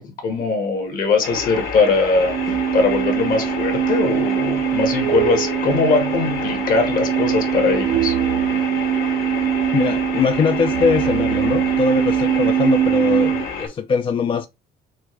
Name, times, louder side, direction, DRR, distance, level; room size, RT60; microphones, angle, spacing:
voice 1, 0.0-8.1, left 3 dB, 55° left, 1.7 m, -21 dB
sound 1, 1.2-13.7, left 5 dB, 70° left, 2.4 m, -29 dB
sound 2, 2.2-13.4, right 11 dB, 65° right, 0.4 m, -22 dB
voice 2, 9.7-14.5, left 5 dB, 30° left, 0.4 m, -21 dB
6.1 x 2.5 x 3.2 m
cardioid pair, 110°, 17 cm